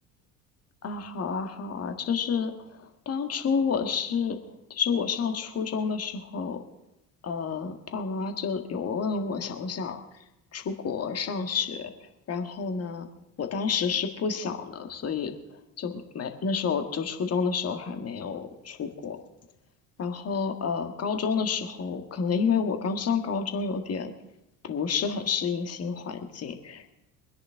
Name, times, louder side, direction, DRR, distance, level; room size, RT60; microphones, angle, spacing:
voice 1, 0.8-6.6 7.2-10.0 10.5-11.9 12.3-13.1 13.4-15.3 15.8-19.2 20.0-24.1 24.6-26.9, left 6 dB, 35° left, 6 dB, 1.7 m, -29 dB
23.5 x 10.5 x 3.6 m, 0.94 s
figure-of-eight pair, 60°, 43 cm